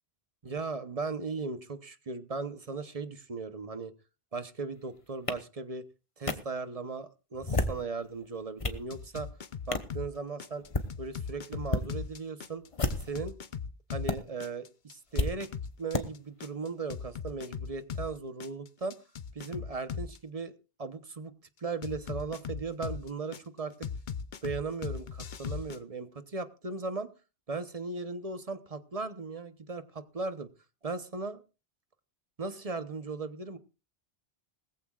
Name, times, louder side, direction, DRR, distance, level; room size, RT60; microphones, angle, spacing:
voice 1, 0.4-3.9 4.3-5.8 6.2-9.3 9.7-10.6 11.0-12.6 13.0-13.4 13.9-15.5 15.8-19.0 19.3-20.5 20.8-21.3 21.6-23.9 24.4-27.1 27.5-30.5 30.8-31.4 32.4-33.6, right 4 dB, 35° right, 11 dB, 1.0 m, -37 dB
sound 1, 5.3-5.4 6.3-6.4 7.3-7.8 8.3-8.8 9.7-9.9 10.6-10.9 11.6-11.9 12.7-13.2 14.1-14.2 15.2-15.3 15.9-16.0, left 2 dB, 35° left, 1.2 m, -30 dB
sound 2, 8.9-10.1 10.4-14.1 14.4-18.1 18.4-20.2 21.8-23.4 23.8-25.8, left 6 dB, 50° left, 0.9 m, -38 dB
20.0 x 14.5 x 2.4 m, 0.31 s
omnidirectional pair, 1.0 m